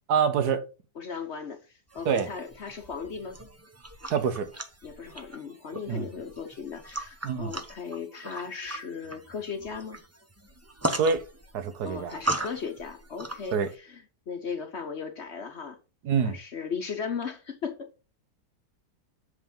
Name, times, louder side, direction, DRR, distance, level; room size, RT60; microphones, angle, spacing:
voice 1, 0.1-0.7 2.0-2.3 4.1-4.5 5.9-6.0 7.2-7.5 11.0-11.2 11.5-12.1 13.5-13.7 16.0-16.4, right 6 dB, 75° right, 1.4 m, -25 dB
voice 2, 0.9-3.4 4.8-10.0 11.8-15.8 16.2-17.9, left 6 dB, 50° left, 1.0 m, -37 dB
sound 1, 1.9-13.7, right 1 dB, 20° right, 0.4 m, -38 dB
7.9 x 3.6 x 5.3 m
omnidirectional pair, 1.8 m